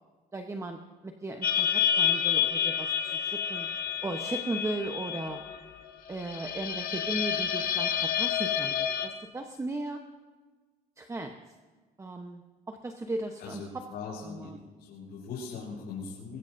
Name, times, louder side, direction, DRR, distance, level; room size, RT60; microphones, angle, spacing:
voice 1, 0.3-3.7 4.0-5.4 6.1-10.0 11.0-11.3 12.0-13.8 14.2-14.6, right 2 dB, 15° right, 4 dB, 1.0 m, -37 dB
sound 1, 1.4-9.1, left 8 dB, 60° left, 1.7 m, -29 dB
voice 2, 13.4-14.5 14.8-16.4, left 5 dB, 80° left, -5 dB, 6.2 m, -40 dB
22.5 x 21.0 x 2.7 m, 1.4 s
cardioid pair, 110°, 17 cm